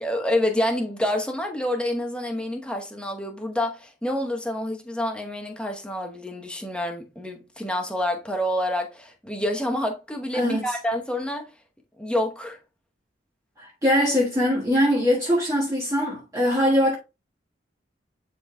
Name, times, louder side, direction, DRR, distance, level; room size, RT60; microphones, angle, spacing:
voice 1, 0.0-11.5 12.0-12.6, left 1 dB, 5° left, 1.0 m, -28 dB
voice 2, 10.3-10.7 13.6-17.0, equal, 15° right, 1.5 m, -22 dB
10.5 x 3.9 x 2.3 m
head